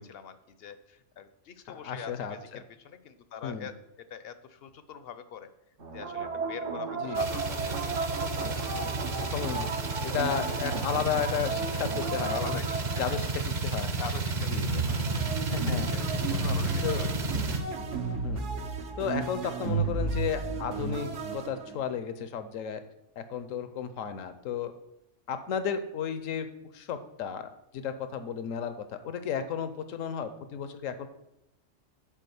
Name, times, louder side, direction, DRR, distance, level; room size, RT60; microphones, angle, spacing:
voice 1, 0.0-5.5 5.9-8.7 12.3-12.8 13.1-13.5 13.9-15.2 15.9-17.3, left 7 dB, 60° left, 12 dB, 0.7 m, -44 dB
voice 2, 1.7-2.6 3.4-3.7 7.0-7.2 8.3-8.9 9.2-12.6 13.0-13.9 14.5-14.7 15.5-15.9 16.8-17.1 18.2-18.4 19.0-22.8 23.2-24.7 25.3-26.5 26.7-31.1, left 7 dB, 85° left, 10 dB, 1.1 m, -33 dB
sound 1, 5.8-14.0 14.5-21.9, right 4 dB, 70° right, 1.3 m, -34 dB
sound 2, 7.1-17.6, right 3 dB, 40° right, 0.9 m, -32 dB
7.4 x 4.9 x 7.0 m, 0.83 s
omnidirectional pair, 1.3 m